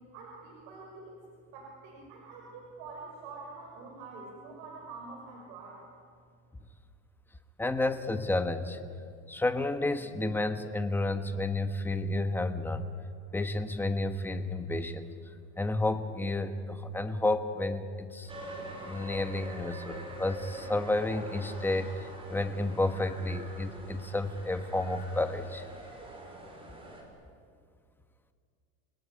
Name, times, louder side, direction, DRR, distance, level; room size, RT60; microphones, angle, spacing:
voice 1, 0.1-1.2 1.5-5.8, right 3 dB, 55° right, -1 dB, 6.3 m, -46 dB
voice 2, 7.6-8.8 9.3-12.9 13.3-15.1 15.6-18.3 18.9-25.6, left 2 dB, 5° left, 8 dB, 1.3 m, -31 dB
sound 1, 18.3-27.0, right 1 dB, 15° right, 5.2 m, -44 dB
30.0 x 18.5 x 9.7 m, 2.2 s
supercardioid pair, 155°, 36 cm